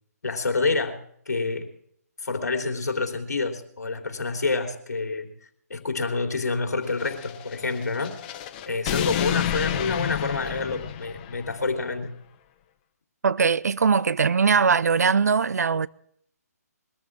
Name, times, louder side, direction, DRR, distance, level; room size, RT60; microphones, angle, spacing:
voice 1, 0.2-1.0 1.3-1.7 2.2-5.3 5.7-8.2 8.7-12.1, left 3 dB, 75° left, 3.1 m, -27 dB
sound 1, 6.9-11.6, left 12 dB, 30° left, 1.0 m, -31 dB
voice 2, 13.2-15.9, right 5 dB, 70° right, 0.6 m, -21 dB
22.0 x 13.5 x 3.6 m
figure-of-eight pair, 145°, 9 cm